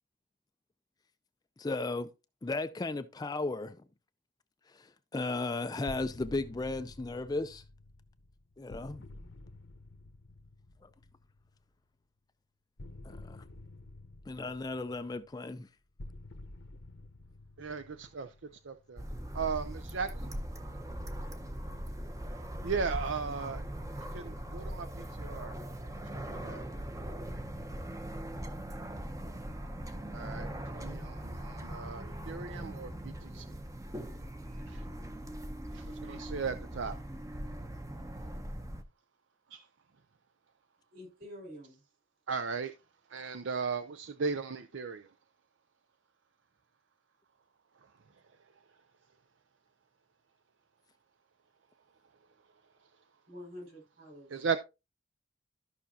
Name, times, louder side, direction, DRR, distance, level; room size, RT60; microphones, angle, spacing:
voice 1, 1.6-2.1 2.4-3.8 4.7-7.6 8.6-9.0 10.8-10.9 13.0-13.4 14.3-15.7, left 2 dB, 20° left, 0.3 m, -35 dB
sound 1, 5.9-11.6 12.8-19.1, left 2 dB, 70° left, 0.9 m, -50 dB
voice 2, 17.6-18.3 18.6-19.0 19.3-20.3 20.6-20.8 22.6-25.6 26.1-26.6 29.5-29.8 30.1-33.5 34.1-34.8 35.7-37.0 39.5-39.7 42.3-42.7 43.1-45.1 54.3-54.6, right 5 dB, 70° right, 0.5 m, -37 dB
sound 2, 19.0-38.8, right 1 dB, 15° right, 0.7 m, -40 dB
voice 3, 40.9-41.8 53.3-54.6, left 1 dB, 50° right, 5.4 m, -48 dB
13.5 x 5.8 x 2.8 m
head